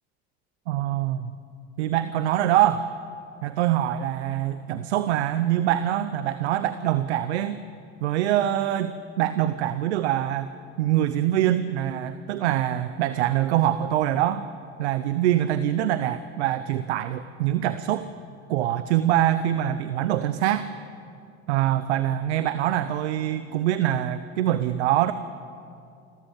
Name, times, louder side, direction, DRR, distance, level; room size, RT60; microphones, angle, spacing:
voice 1, 0.7-1.3 1.8-2.9 3.4-7.6 8.0-10.5 10.8-14.5 14.8-18.1 18.5-20.7 21.5-25.1, right 12 dB, 90° right, 13 dB, 0.7 m, -24 dB
27.5 x 13.5 x 7.3 m, 2.5 s
hypercardioid pair, 70°, 32 cm